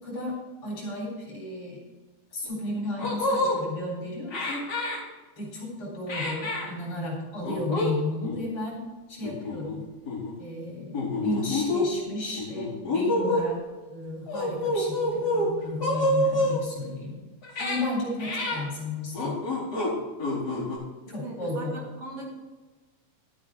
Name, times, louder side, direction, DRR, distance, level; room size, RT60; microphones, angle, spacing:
voice 1, 0.0-1.8 2.3-4.6 5.4-8.8 9.1-9.8 10.4-13.6 13.9-17.2 17.6-19.3 21.1-21.8, left 2 dB, 45° left, -2 dB, 5.1 m, -33 dB
sound 1, 2.4-2.5 3.0-3.6 4.3-5.0 6.1-6.7 7.4-7.9 8.2-8.4 9.2-9.8 10.0-10.3 10.9-11.8 12.4-13.5 14.3-15.5 15.8-16.6 17.4-17.8 18.2-18.6 19.1-19.9 20.2-20.8, left 1 dB, 30° left, 4.6 m, -27 dB
voice 2, 21.0-22.3, right 2 dB, 55° right, -2 dB, 2.7 m, -39 dB
12.0 x 8.8 x 4.4 m, 1.3 s
omnidirectional pair, 3.5 m